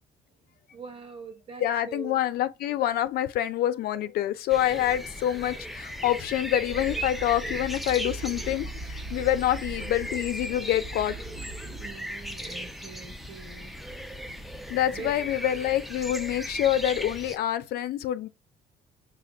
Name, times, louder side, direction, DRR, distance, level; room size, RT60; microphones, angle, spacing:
voice 1, 0.7-2.2 11.8-13.7 14.9-15.2, right 5 dB, 35° right, 1.2 m, -43 dB
voice 2, 1.6-11.2 14.7-18.3, left 12 dB, 65° left, 0.4 m, -27 dB
sound 1, 4.5-17.4, equal, ahead, 0.4 m, -37 dB
sound 2, 6.7-11.9, right 2 dB, 70° right, 1.0 m, -40 dB
5.0 x 2.3 x 3.3 m
cardioid pair, 110°, 17 cm